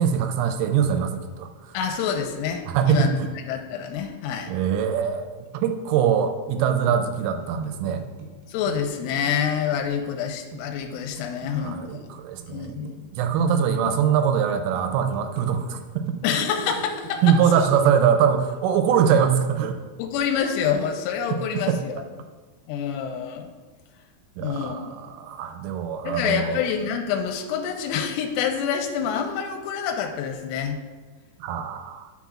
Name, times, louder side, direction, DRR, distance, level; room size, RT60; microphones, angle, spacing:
voice 1, 0.0-1.7 2.7-3.3 4.5-8.0 11.5-16.1 17.2-19.8 21.7-22.0 24.4-26.6 31.4-32.1, right 8 dB, 85° right, 7 dB, 3.1 m, -23 dB
voice 2, 1.7-3.2 3.5-4.5 8.5-12.0 12.5-13.4 16.2-17.7 20.0-22.0 22.7-23.5 24.4-25.0 26.0-30.8, left 7 dB, 85° left, 3 dB, 3.1 m, -27 dB
sound 1, 6.9-12.9 13.4-14.5 14.8-17.6, right 8 dB, 70° right, 3.3 m, -41 dB
10.0 x 6.0 x 2.4 m, 1.3 s
omnidirectional pair, 5.7 m